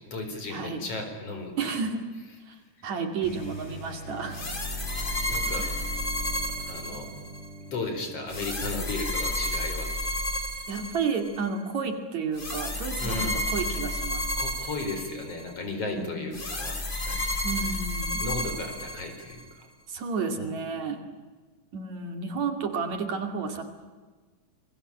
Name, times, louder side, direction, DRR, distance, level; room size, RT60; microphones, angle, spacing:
voice 1, 0.0-1.8 2.8-2.9 5.3-5.7 6.6-7.1 7.7-10.2 13.0-13.4 14.4-16.8 17.1-17.4 18.2-19.7 20.4-20.5, left 2 dB, 45° left, 4 dB, 5.4 m, -35 dB
voice 2, 0.5-0.9 1.6-2.0 2.5-4.4 5.6-5.8 10.7-14.3 16.0-16.3 17.4-18.2 19.9-21.0 21.7-23.6, right 5 dB, 60° right, 6 dB, 3.6 m, -31 dB
sound 1, 3.2-9.3, right 1 dB, 85° left, 6.9 m, -43 dB
sound 2, 4.3-7.5 8.3-11.4 12.3-15.5 16.3-19.4, left 1 dB, 15° left, 2.6 m, -31 dB
28.5 x 21.5 x 8.7 m, 1.4 s
omnidirectional pair, 3.7 m